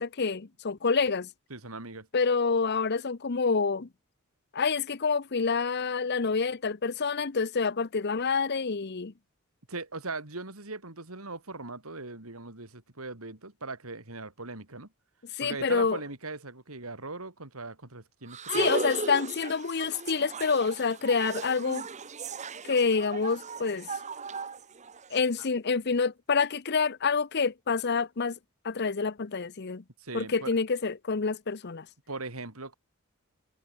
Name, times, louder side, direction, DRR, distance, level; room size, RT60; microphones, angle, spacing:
voice 1, 0.0-1.3 2.1-3.9 4.5-9.1 15.3-16.0 18.5-21.9 22.6-23.9 25.1-28.4 28.6-29.8 30.1-31.9, left 5 dB, 50° left, 0.8 m, -27 dB
voice 2, 1.5-2.1 9.7-14.9 15.4-18.8 25.4-25.5 30.0-30.6 32.1-32.7, right 3 dB, 90° right, 4.2 m, -40 dB
sound 1, 18.3-25.2, right 4 dB, 35° right, 1.1 m, -36 dB
head